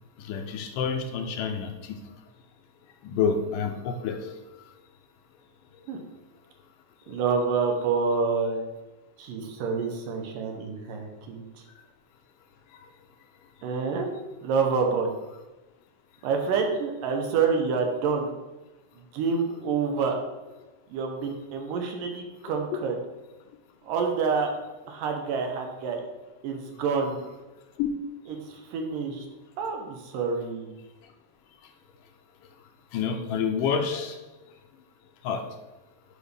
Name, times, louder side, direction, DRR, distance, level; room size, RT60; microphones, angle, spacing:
voice 1, 0.2-2.0 3.0-4.3 7.1-7.2 12.7-12.9 27.8-27.9 32.9-34.2 35.2-35.5, left 6 dB, 85° left, 5 dB, 2.2 m, -28 dB
voice 2, 7.1-8.6 9.2-11.4 13.6-14.1 14.4-15.1 16.2-18.3 19.1-20.2 20.9-23.0 23.8-24.5 24.9-26.0 26.4-27.2 28.3-29.3 29.6-30.7, right 5 dB, 85° right, 3 dB, 2.6 m, -27 dB
10.5 x 5.1 x 3.4 m, 1.1 s
omnidirectional pair, 3.9 m